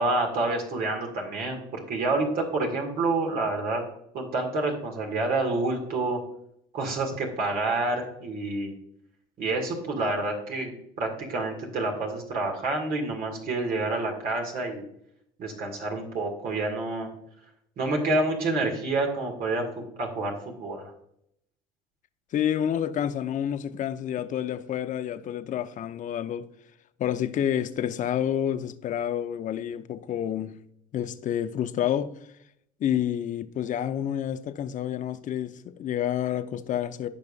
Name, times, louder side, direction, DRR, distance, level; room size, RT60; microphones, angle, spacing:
voice 1, 0.0-3.8 4.1-6.2 6.7-8.7 9.4-14.8 15.4-17.1 17.8-20.9, right 2 dB, 60° right, 2.0 m, -28 dB
voice 2, 22.3-26.5 27.0-30.6 30.9-32.1 32.8-37.1, left 10 dB, 50° left, 0.7 m, -29 dB
15.0 x 5.3 x 2.5 m
supercardioid pair, 80°, 17 cm